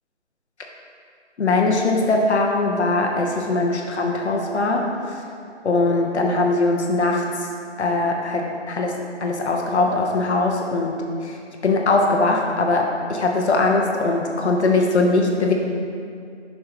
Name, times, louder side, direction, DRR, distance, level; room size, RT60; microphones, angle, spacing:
voice 1, 1.4-4.8 5.6-7.2 7.8-8.9 9.2-11.0 11.2-11.4 11.6-15.5, left 3 dB, 65° left, 0 dB, 1.0 m, -21 dB
10.5 x 5.5 x 3.0 m, 2.4 s
hypercardioid pair, 175°, 36 cm